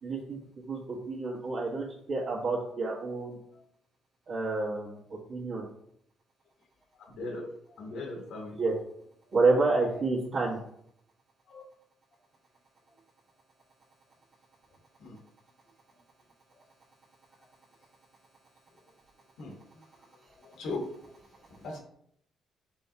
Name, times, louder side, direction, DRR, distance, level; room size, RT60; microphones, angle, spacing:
voice 1, 0.0-3.4 4.3-5.0 5.3-5.6 8.6-8.7 9.3-10.6, right 3 dB, 65° right, -9 dB, 1.5 m, -29 dB
voice 2, 7.2-7.5 7.8-8.6 11.5-11.6 15.0-15.2 19.4-19.5 20.4-21.1 21.6-21.8, left 2 dB, 90° left, 0 dB, 1.1 m, -38 dB
5.4 x 3.5 x 2.8 m, 0.70 s
cardioid pair, 90°, 0 cm